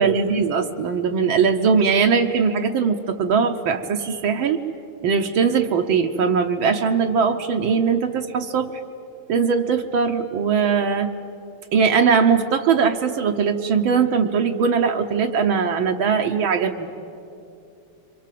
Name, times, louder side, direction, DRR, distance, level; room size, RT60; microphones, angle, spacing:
voice 1, 0.0-4.6 5.0-8.7 9.3-11.1 11.7-16.9, right 6 dB, 70° right, 4 dB, 1.7 m, -20 dB
27.0 x 24.5 x 7.6 m, 2.7 s
omnidirectional pair, 2.3 m